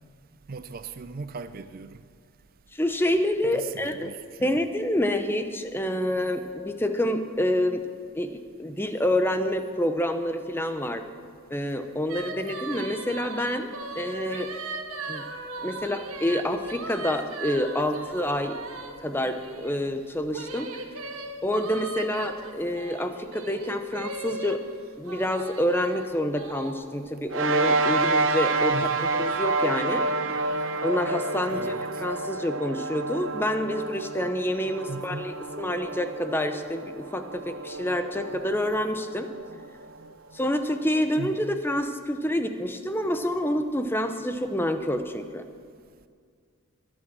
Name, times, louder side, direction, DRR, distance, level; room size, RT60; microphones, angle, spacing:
voice 1, 0.5-2.0 3.5-4.6 28.7-29.1 31.5-32.0 34.9-35.3 41.2-41.6, right 4 dB, 40° right, 0.4 m, -38 dB
voice 2, 2.7-4.1 4.4-7.8 8.1-8.3 8.6-11.0 11.5-13.7 14.0-14.5 15.1-15.2 15.6-18.6 19.0-20.7 21.4-24.6 25.0-30.1 30.8-39.3 40.3-45.4, left 1 dB, 10° left, 0.7 m, -27 dB
sound 1, 12.1-19.8 20.3-24.6 25.1-26.7, right 3 dB, 75° right, 1.6 m, -38 dB
sound 2, 27.3-40.0, right 3 dB, 60° right, 0.8 m, -29 dB
23.0 x 8.8 x 6.1 m
head